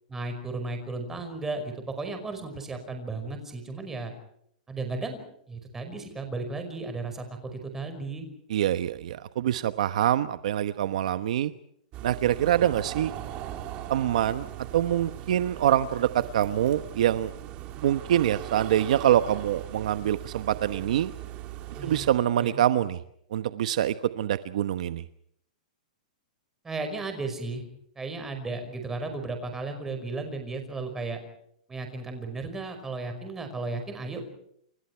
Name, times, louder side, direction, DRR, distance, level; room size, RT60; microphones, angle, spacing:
voice 1, 0.1-4.1 4.7-5.2 5.5-7.2 7.5-8.3 21.7-22.1 22.4-22.6 26.6-27.6 28.0-31.2 31.7-34.2, right 3 dB, 10° right, 6 dB, 5.2 m, -34 dB
voice 2, 8.5-11.5 12.0-13.1 13.9-14.5 14.7-17.3 17.8-21.1 21.8-23.0 23.3-25.0, right 11 dB, 55° right, 12 dB, 1.1 m, -25 dB
sound 1, 11.9-22.1, right 13 dB, 25° right, 2.7 m, -39 dB
29.5 x 28.5 x 4.6 m, 0.70 s
hypercardioid pair, 165°, 4 cm